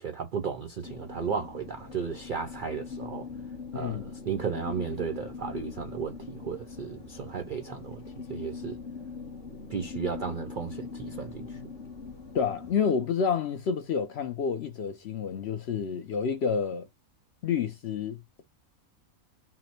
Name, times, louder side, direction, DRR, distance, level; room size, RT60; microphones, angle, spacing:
voice 1, 0.0-3.3 3.7-8.0 8.3-8.8 9.7-11.6, right 6 dB, 60° right, 0.5 m, -34 dB
sound 1, 0.8-12.8, left 5 dB, 40° left, 1.0 m, -41 dB
voice 2, 3.7-4.1 12.3-16.9 17.4-18.4, left 6 dB, 60° left, 0.7 m, -29 dB
5.7 x 2.1 x 4.3 m
omnidirectional pair, 1.5 m